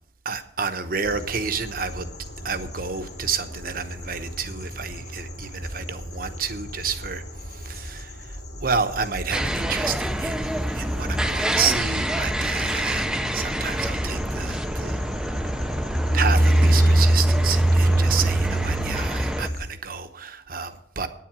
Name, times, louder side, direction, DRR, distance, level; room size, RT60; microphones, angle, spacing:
voice 1, 0.2-2.1 2.4-13.1 13.3-15.0 15.4-15.7 16.1-21.1, right 6 dB, 50° right, 0.9 m, -30 dB
sound 1, 1.0-19.7, right 1 dB, 65° left, 2.3 m, -26 dB
sound 2, 9.3-19.5, equal, 5° right, 0.4 m, -27 dB
9.7 x 7.6 x 7.4 m
head